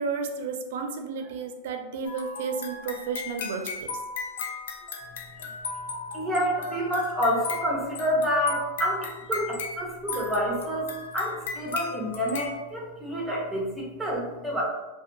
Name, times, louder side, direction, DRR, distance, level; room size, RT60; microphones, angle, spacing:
voice 1, 0.0-4.0, right 5 dB, 65° right, 5 dB, 0.4 m, -32 dB
sound 1, 2.0-12.6, left 4 dB, 85° left, 0.4 m, -37 dB
voice 2, 6.1-14.6, equal, ahead, -3 dB, 0.6 m, -28 dB
2.6 x 2.1 x 2.5 m, 1.1 s
supercardioid pair, 155°, 0 cm